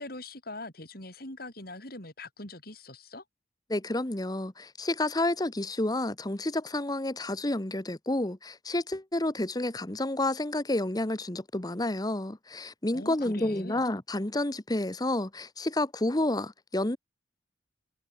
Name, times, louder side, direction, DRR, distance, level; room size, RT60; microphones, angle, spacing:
voice 1, 0.0-3.2 12.9-13.8, left 2 dB, 55° left, 6.8 m, -42 dB
voice 2, 3.7-17.0, left 1 dB, 20° left, 1.1 m, -30 dB
head